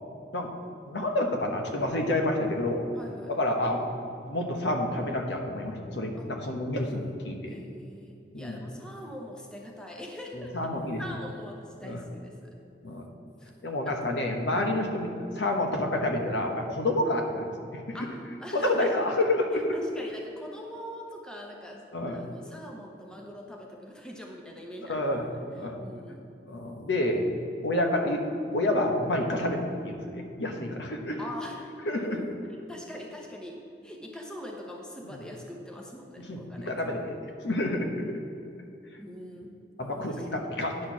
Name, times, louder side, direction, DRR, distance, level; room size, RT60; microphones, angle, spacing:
voice 1, 0.9-2.8 3.3-3.9 4.2-7.6 8.3-8.6 10.4-11.0 11.8-12.0 12.8-13.1 13.6-18.1 18.5-19.8 21.9-22.2 24.9-25.3 25.5-25.8 26.5-27.3 27.6-28.2 28.5-31.2 31.8-32.3 35.0-35.2 36.2-37.1 37.4-38.2 39.8-40.7, left 1 dB, 85° left, 2 dB, 1.0 m, -29 dB
voice 2, 2.9-3.3 6.2-6.3 7.5-10.6 11.0-12.6 13.4-13.5 13.9-14.2 17.9-18.9 19.5-25.0 25.7-26.3 31.2-31.7 32.7-36.8 39.0-39.5 39.9-40.5, equal, 5° left, 0 dB, 0.8 m, -43 dB
9.9 x 4.3 x 6.1 m, 2.6 s
head